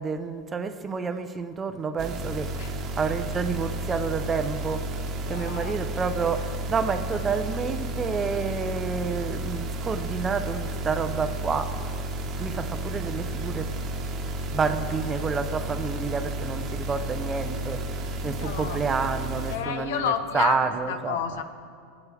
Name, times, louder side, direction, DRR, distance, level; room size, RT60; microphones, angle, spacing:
voice 1, 0.0-12.1 12.4-13.7 14.5-21.2, right 5 dB, 20° right, 9 dB, 0.6 m, -29 dB
sound 1, 2.0-19.6, right 1 dB, 40° right, 1.2 m, -32 dB
voice 2, 5.2-5.7 14.4-14.8 18.2-18.8 19.5-21.4, left 7 dB, 80° left, 9 dB, 0.8 m, -31 dB
17.5 x 8.2 x 3.4 m, 2.2 s
supercardioid pair, 120°, 0 cm